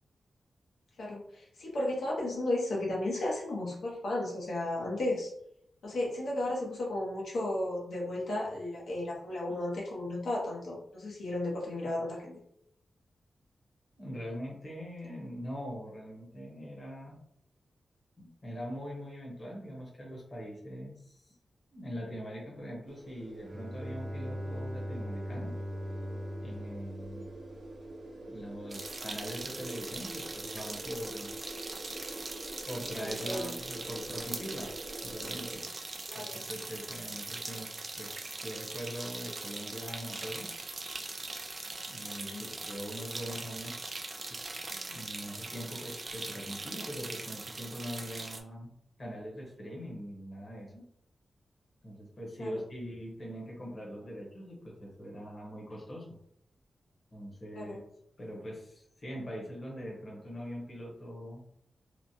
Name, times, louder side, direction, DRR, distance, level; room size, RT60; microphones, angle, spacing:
voice 1, 1.0-5.3 5.8-12.4 33.0-33.5 36.1-36.4 42.2-42.5 52.4-52.5 57.5-57.8, left 1 dB, 80° left, -4 dB, 0.8 m, -34 dB
voice 2, 14.0-17.2 18.2-21.4 21.7-25.6 26.4-27.3 28.3-31.4 32.7-34.7 35.0-35.7 36.1-37.7 38.0-40.5 41.9-44.0 44.3-48.7 49.0-50.9 51.8-56.1 57.1-57.8 58.2-61.4, equal, 35° left, -3 dB, 0.9 m, -42 dB
sound 1, 22.9-35.6, right 2 dB, 80° right, 0.7 m, -46 dB
Bowed string instrument, 23.4-28.1, equal, 55° right, 0.9 m, -40 dB
sound 2, 28.7-48.4, right 3 dB, 35° right, 0.3 m, -41 dB
3.0 x 2.1 x 2.7 m, 0.74 s
wide cardioid pair, 140°, 0 cm